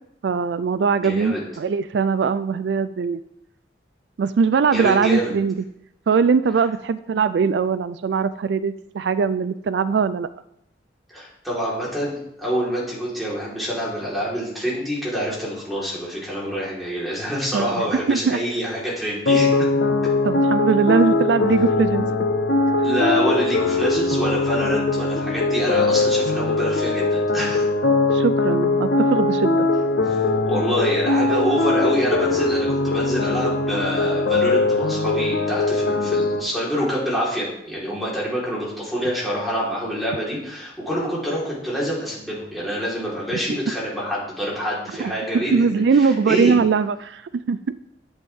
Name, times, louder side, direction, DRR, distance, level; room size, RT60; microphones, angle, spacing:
voice 1, 0.2-3.2 4.2-5.5 6.1-10.3 17.5-18.4 20.2-22.1 28.1-29.7 43.5-43.6 45.0-47.2 47.5-47.6, right 5 dB, 75° right, 14 dB, 0.4 m, -21 dB
voice 2, 1.0-1.4 4.7-5.3 11.1-19.7 22.8-27.6 30.0-30.2 30.5-46.5, equal, ahead, -7 dB, 3.9 m, -26 dB
sound 1, 19.3-36.4, left 2 dB, 90° left, 0.9 m, -21 dB
11.0 x 7.8 x 3.6 m, 0.79 s
head